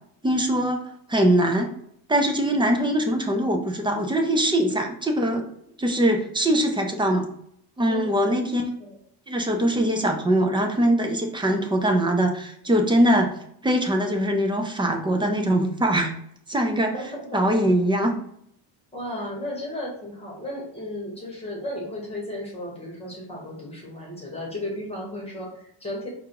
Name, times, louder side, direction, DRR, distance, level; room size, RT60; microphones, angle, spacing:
voice 1, 0.2-0.8 1.1-1.7 2.1-5.5 5.8-7.3 7.8-8.6 9.3-13.3 13.6-16.1 16.5-16.9 17.3-18.2, right 1 dB, 10° right, 3 dB, 0.4 m, -22 dB
voice 2, 16.9-17.4 18.9-26.1, left 1 dB, 10° left, -2 dB, 1.5 m, -34 dB
4.6 x 2.5 x 4.6 m, 0.70 s
cardioid pair, 130°, 50 cm